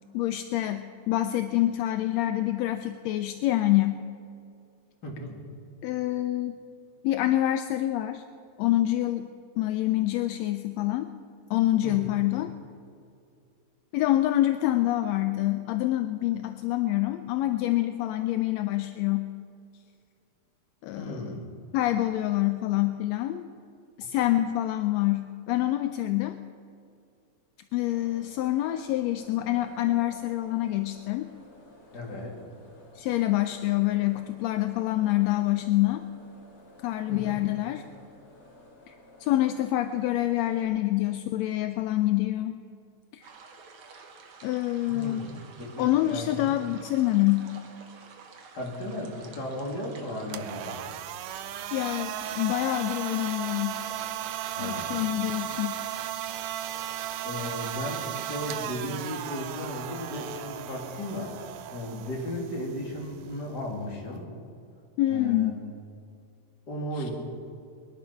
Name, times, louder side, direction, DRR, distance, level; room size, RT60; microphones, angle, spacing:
voice 1, 0.1-4.1 5.8-6.6 7.0-8.2 8.6-11.1 11.5-12.5 13.9-19.3 20.8-21.4 21.7-23.5 24.0-26.4 27.7-31.3 32.9-36.0 36.8-37.8 38.9-39.0 39.2-42.6 43.1-43.2 44.4-45.3 45.8-47.5 51.7-53.8 54.6-55.8 65.0-65.6, left 15 dB, 80° left, 9 dB, 1.7 m, -26 dB
voice 2, 5.0-5.4 11.8-12.1 20.9-21.5 31.9-32.4 37.1-37.4 44.8-46.5 48.5-50.8 54.5-55.0 57.2-61.4 61.7-64.3 65.1-65.5 66.7-67.1, left 1 dB, 35° left, -2 dB, 3.1 m, -35 dB
sound 1, 27.8-40.6, left 1 dB, 60° left, 4.1 m, -54 dB
sound 2, 43.2-54.0, right 4 dB, 50° right, 1.9 m, -50 dB
sound 3, 50.2-64.2, right 11 dB, 75° right, 1.6 m, -36 dB
22.0 x 11.0 x 5.7 m, 2.5 s
omnidirectional pair, 3.4 m